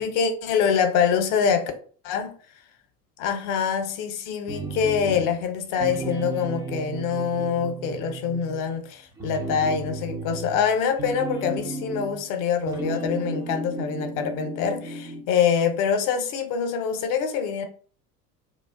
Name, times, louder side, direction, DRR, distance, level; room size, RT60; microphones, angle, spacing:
voice 1, 0.0-1.7 2.0-2.3 3.2-17.6, left 7 dB, 45° left, 0.6 m, -25 dB
sound 1, 4.5-5.4 5.7-8.8 9.1-12.3 12.6-15.3, right 2 dB, 10° right, 0.3 m, -34 dB
2.3 x 2.1 x 3.4 m
figure-of-eight pair, 70°, 47 cm